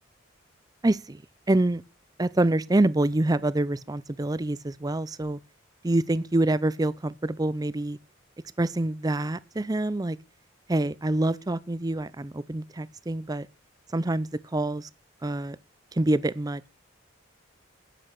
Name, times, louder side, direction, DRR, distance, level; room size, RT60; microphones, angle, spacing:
voice 1, 0.8-1.2 1.5-1.8 2.2-5.4 5.8-8.0 8.6-10.2 10.7-13.5 13.9-14.9 15.2-15.6 15.9-16.7, right 1 dB, 20° right, 0.5 m, -26 dB
10.0 x 8.6 x 5.9 m
head